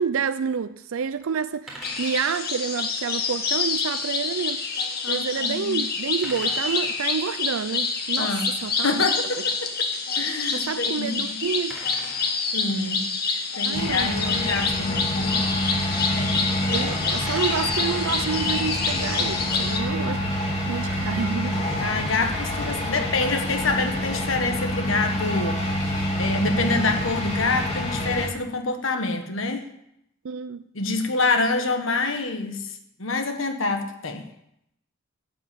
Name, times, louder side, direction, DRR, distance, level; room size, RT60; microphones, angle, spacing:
voice 1, 0.0-4.6 5.1-9.1 10.5-11.8 13.6-14.2 16.7-20.2 20.6-21.6 30.2-30.6, right 6 dB, 90° right, 0.5 m, -29 dB
sound 1, 1.7-2.2 3.7-3.9 6.2-7.0 9.4-9.6 11.7-12.3 14.3-14.5 14.7-14.8 17.3-17.9 19.6-20.0, right 1 dB, ahead, 3.6 m, -41 dB
sound 2, 1.8-19.8, left 4 dB, 50° left, 1.8 m, -27 dB
voice 2, 5.0-5.8 8.2-8.5 8.8-9.7 10.1-11.4 12.5-15.4 15.7-16.8 21.8-29.7 30.7-34.3, left 3 dB, 75° left, 1.5 m, -27 dB
sound 3, 13.7-28.3, left 1 dB, 30° left, 3.4 m, -27 dB
12.5 x 8.4 x 8.4 m
head